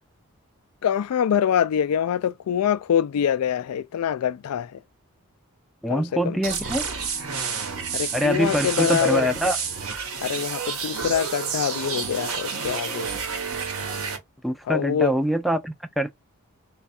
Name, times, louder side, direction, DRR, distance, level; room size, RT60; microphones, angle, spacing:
voice 1, 0.8-4.8 5.9-6.4 7.9-9.3 10.2-13.1 14.7-15.1, left 8 dB, 80° left, 0.3 m, -24 dB
voice 2, 5.8-6.8 8.1-9.6 14.4-16.1, right 1 dB, ahead, 0.4 m, -24 dB
sound 1, 6.4-14.2, right 5 dB, 70° right, 1.0 m, -30 dB
3.3 x 2.3 x 4.1 m
head